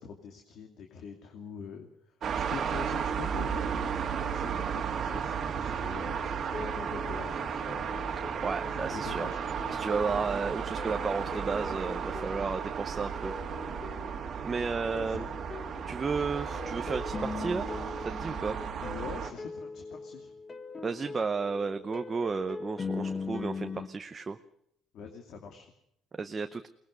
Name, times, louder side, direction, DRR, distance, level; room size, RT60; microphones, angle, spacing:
voice 1, 0.0-7.8 8.7-9.4 14.2-14.5 15.0-15.4 18.5-20.3 24.9-25.7, left 6 dB, 55° left, 4 dB, 2.6 m, -44 dB
sound 1, 2.2-19.3, right 7 dB, 40° right, 2.1 m, -34 dB
sound 2, 6.0-23.9, left 4 dB, 20° left, 1.1 m, -42 dB
voice 2, 8.4-9.3 9.7-13.3 14.4-15.3 15.9-17.7 18.1-18.6 20.8-24.4 26.2-26.7, right 4 dB, 20° right, 8 dB, 0.8 m, -33 dB
22.5 x 19.5 x 6.7 m, 0.76 s
cardioid pair, 150°, 0 cm